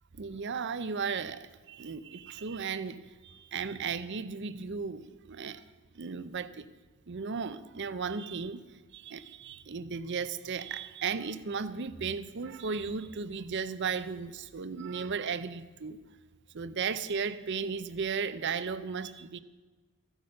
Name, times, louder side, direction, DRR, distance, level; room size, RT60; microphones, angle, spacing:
voice 1, 0.1-3.0 3.2-5.6 5.9-6.6 7.1-8.6 8.9-16.0 16.5-19.4, right 5 dB, 50° right, 0.6 m, -35 dB
14.5 x 8.1 x 6.5 m
head